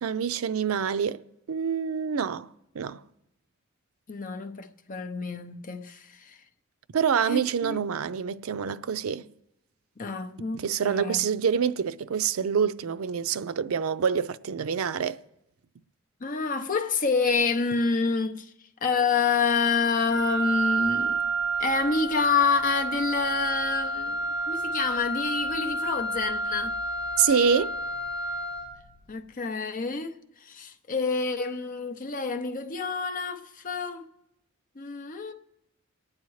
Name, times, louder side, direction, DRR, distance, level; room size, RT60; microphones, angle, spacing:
voice 1, 0.0-1.2 1.5-3.0 6.9-9.3 10.5-15.2 27.2-27.7, right 7 dB, 80° right, 0.5 m, -26 dB
voice 2, 4.1-6.4 7.2-7.8 10.0-11.2 16.2-18.5 18.8-21.2 21.6-26.7 29.1-34.0 34.8-35.3, left 4 dB, 40° left, 0.7 m, -28 dB
Wind instrument woodwind instrument, 20.1-28.8, right 2 dB, 55° right, 5.6 m, -30 dB
28.5 x 9.6 x 3.2 m
head